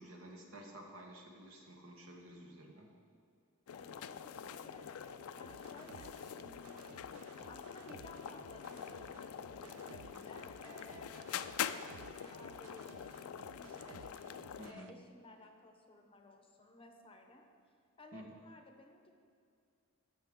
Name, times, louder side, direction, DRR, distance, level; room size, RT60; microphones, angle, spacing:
voice 1, 0.0-2.9 14.6-14.9 18.1-18.2, right 1 dB, 65° right, 1 dB, 1.4 m, -52 dB
sound 1, 3.7-14.7, left 8 dB, 80° left, 0.4 m, -45 dB
voice 2, 3.7-11.2 11.7-14.2 14.6-17.5 18.0-19.1, left 2 dB, 25° left, 4 dB, 0.7 m, -57 dB
sound 2, 5.2-14.9, right 8 dB, 85° right, 0.3 m, -58 dB
15.5 x 6.5 x 3.7 m, 2.3 s
head